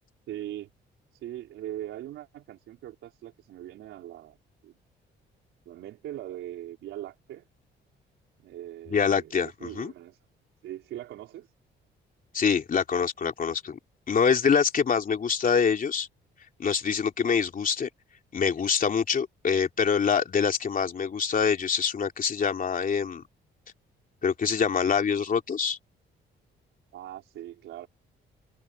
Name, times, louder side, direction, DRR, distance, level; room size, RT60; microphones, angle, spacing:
voice 1, 0.3-0.7 1.1-4.4 4.6-4.7 5.7-7.5 8.4-10.2 10.6-11.5 17.2-17.4 26.9-27.9, right 13 dB, 85° right, 4.1 m, -41 dB
voice 2, 8.9-9.9 12.3-13.8 14.1-16.1 16.6-17.9 18.3-23.2 24.2-25.8, left 6 dB, 45° left, 3.0 m, -25 dB
cardioid pair, 90°, 20 cm